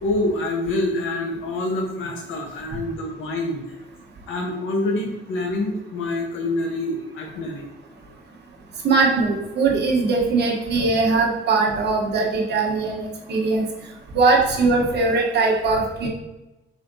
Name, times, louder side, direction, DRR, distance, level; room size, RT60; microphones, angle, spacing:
voice 1, 0.0-3.7 4.3-7.6, left 2 dB, 80° left, 1 dB, 1.0 m, -26 dB
voice 2, 8.8-13.7 14.1-16.1, right 3 dB, 60° right, -1 dB, 1.0 m, -20 dB
4.5 x 4.1 x 2.6 m, 1.0 s
cardioid pair, 90°, 20 cm